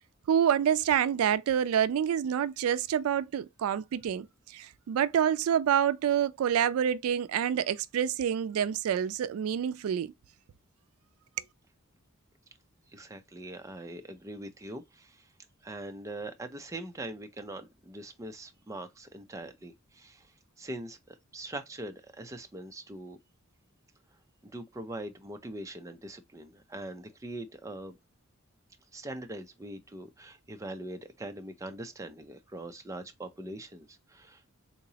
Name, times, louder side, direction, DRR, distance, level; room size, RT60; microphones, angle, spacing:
voice 1, 0.3-10.1, right 9 dB, 90° right, 0.3 m, -27 dB
voice 2, 12.9-15.2 15.6-20.3 20.6-23.2 24.4-28.0 28.9-34.5, right 1 dB, 15° right, 0.5 m, -42 dB
3.7 x 2.9 x 2.7 m
head